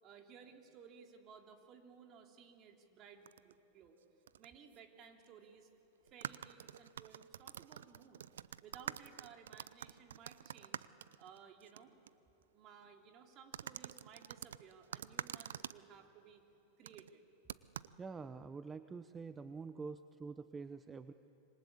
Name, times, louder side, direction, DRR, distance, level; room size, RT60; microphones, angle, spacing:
voice 1, 0.0-4.0 4.4-5.7 6.0-10.9 11.2-12.0 12.5-16.4 16.8-17.2, right 6 dB, 40° right, 3 dB, 3.2 m, -58 dB
sound 1, 3.3-3.5 4.3-4.5 4.7-4.8 6.1-11.8 12.1-12.2 13.5-15.8 16.9-17.1 17.5-17.9, right 9 dB, 75° right, 0.6 m, -47 dB
voice 2, 18.0-21.1, right 4 dB, 20° right, 11 dB, 0.8 m, -46 dB
26.5 x 24.5 x 8.5 m, 2.9 s
hypercardioid pair, 95°, 0 cm